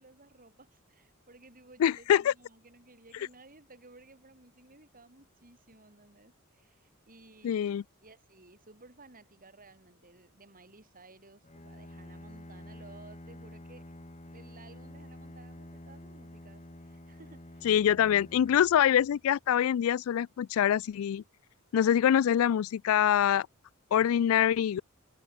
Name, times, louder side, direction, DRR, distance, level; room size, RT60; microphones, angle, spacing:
voice 1, 0.0-13.9 14.3-17.8, right 3 dB, 40° right, 7.1 m, -56 dB
voice 2, 1.8-2.3 7.4-7.8 17.6-21.2 21.7-23.5 23.9-24.8, left 9 dB, 70° left, 0.3 m, -25 dB
Bowed string instrument, 11.4-19.4, left 1 dB, 35° left, 2.5 m, -49 dB
head